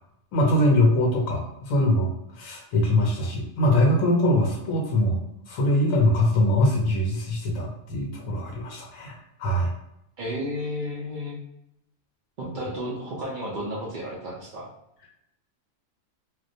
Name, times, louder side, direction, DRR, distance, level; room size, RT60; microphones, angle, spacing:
voice 1, 0.3-2.1 2.4-5.2 5.5-9.1 9.4-9.7, left 1 dB, 80° left, 0 dB, 1.0 m, -22 dB
voice 2, 10.2-11.4 12.4-14.7, equal, 75° right, -3 dB, 0.4 m, -32 dB
2.3 x 2.1 x 2.5 m, 0.81 s
omnidirectional pair, 1.4 m